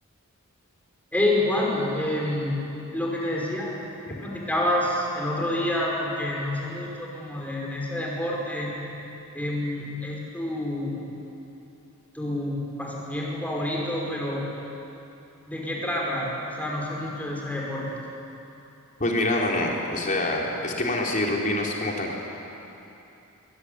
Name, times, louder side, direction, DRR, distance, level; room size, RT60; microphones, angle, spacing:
voice 1, 1.1-2.6 2.9-8.9 9.3-11.1 12.1-14.5 15.5-18.0, left 1 dB, 5° left, -3 dB, 5.5 m, -28 dB
voice 2, 19.0-22.2, left 1 dB, 35° left, -1 dB, 4.0 m, -26 dB
22.0 x 21.5 x 9.7 m, 2.9 s
head